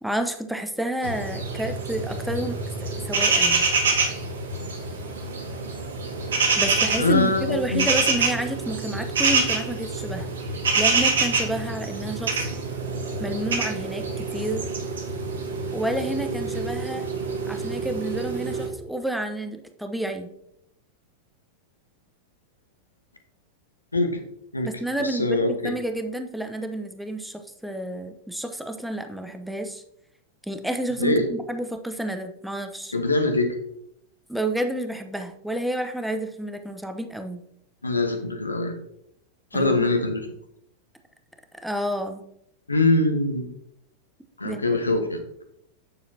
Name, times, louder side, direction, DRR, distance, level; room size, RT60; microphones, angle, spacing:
voice 1, 0.0-3.6 6.6-10.3 10.8-12.4 13.2-14.7 15.7-17.0 17.5-20.3 24.6-25.4 25.6-29.8 30.4-32.9 34.3-37.4 39.5-39.9 41.6-42.2 44.4-44.7, right 1 dB, ahead, 6 dB, 0.9 m, -30 dB
sound 1, 1.0-18.7, right 4 dB, 65° right, 1.8 m, -26 dB
voice 2, 7.0-7.9 23.9-24.2 24.5-24.7 25.0-25.7 31.0-31.2 32.9-33.6 37.8-38.7 39.5-40.3 42.7-43.5 44.4-45.2, left 2 dB, 80° left, 5 dB, 1.2 m, -23 dB
9.2 x 6.9 x 2.8 m, 0.76 s
figure-of-eight pair, 90°, 0 cm